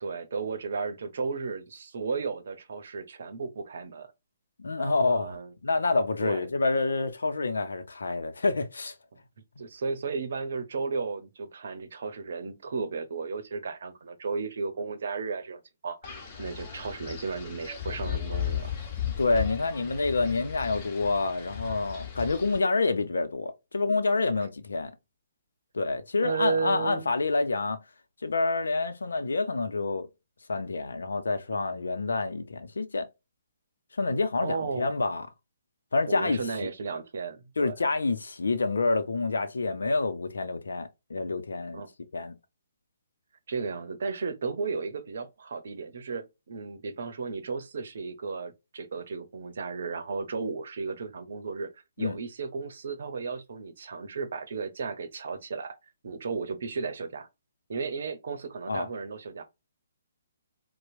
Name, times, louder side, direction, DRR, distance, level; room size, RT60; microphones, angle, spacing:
voice 1, 0.0-4.1 4.8-5.5 6.2-6.4 9.6-18.7 26.2-27.1 34.4-34.9 36.1-37.7 41.7-41.9 43.5-51.7 52.0-55.8 56.0-57.3 57.7-59.4, right 4 dB, 55° right, 0.8 m, -34 dB
voice 2, 4.6-8.9 19.2-24.9 25.7-27.8 28.2-30.1 30.5-33.1 34.0-35.3 35.9-36.7 37.6-41.8 42.1-42.4 52.0-52.2 58.7-58.9, left 3 dB, 70° left, 0.7 m, -28 dB
Wind, 16.0-22.6, left 10 dB, 30° left, 1.2 m, -36 dB
4.4 x 2.2 x 2.3 m
figure-of-eight pair, 135°, 0 cm